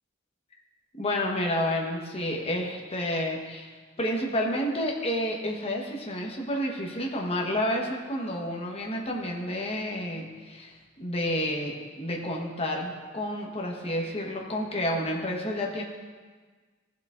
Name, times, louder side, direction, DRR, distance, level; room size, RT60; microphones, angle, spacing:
voice 1, 1.0-3.7 4.0-15.8, left 1 dB, 30° left, 0 dB, 1.2 m, -30 dB
15.5 x 7.3 x 2.5 m, 1.5 s
head